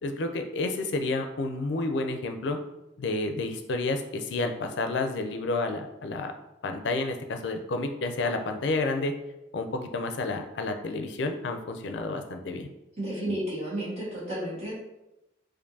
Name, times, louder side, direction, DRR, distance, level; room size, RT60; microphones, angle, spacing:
voice 1, 0.0-2.6 3.0-6.3 6.6-9.1 9.5-12.7, left 2 dB, 70° left, 6 dB, 0.4 m, -30 dB
voice 2, 13.0-14.7, right 1 dB, 35° right, -9 dB, 1.4 m, -32 dB
4.3 x 2.6 x 2.7 m, 0.93 s
head